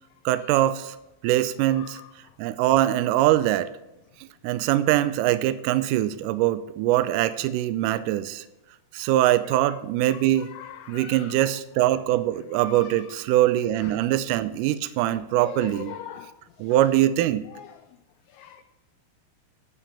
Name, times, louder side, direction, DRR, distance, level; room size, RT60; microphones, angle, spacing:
voice 1, 0.3-1.0 1.2-2.0 2.4-3.7 4.4-8.4 8.9-10.5 10.9-16.0 16.6-17.5, right 13 dB, 90° right, 1.8 m, -23 dB
voice 2, 1.8-2.1 10.1-10.2 10.5-11.3 12.6-13.0 15.1-16.3 16.7-16.8 17.5-17.7 18.3-18.6, left 9 dB, 85° left, 1.9 m, -41 dB
9.8 x 5.9 x 6.9 m
omnidirectional pair, 4.4 m